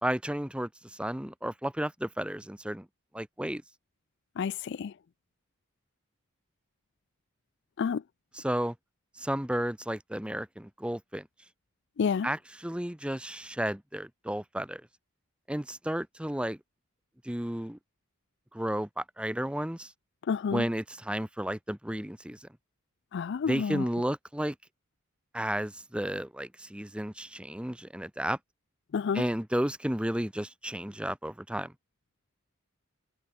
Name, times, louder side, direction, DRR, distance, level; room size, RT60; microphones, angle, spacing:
voice 1, 0.0-2.9 3.1-3.6 8.3-8.7 9.2-11.3 12.2-14.8 15.5-16.6 17.2-17.8 18.5-19.9 20.5-22.5 23.5-24.5 25.3-28.4 29.1-31.7, equal, 5° right, 0.9 m, -32 dB
voice 2, 4.4-4.9 7.8-8.0 12.0-12.3 20.3-20.7 23.1-23.8 28.9-29.2, left 6 dB, 50° left, 0.3 m, -29 dB
head